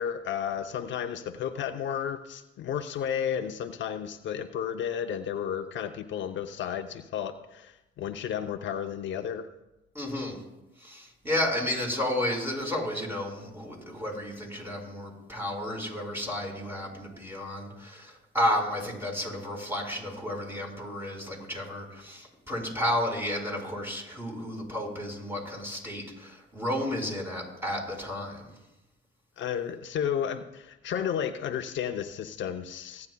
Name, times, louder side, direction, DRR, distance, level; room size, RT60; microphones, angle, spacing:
voice 1, 0.0-9.5 29.4-33.1, left 8 dB, 70° left, 6 dB, 0.7 m, -32 dB
voice 2, 9.9-10.4 10.8-28.4, left 1 dB, 10° right, -1 dB, 4.7 m, -32 dB
24.5 x 9.5 x 2.3 m, 0.96 s
cardioid pair, 90°, 20 cm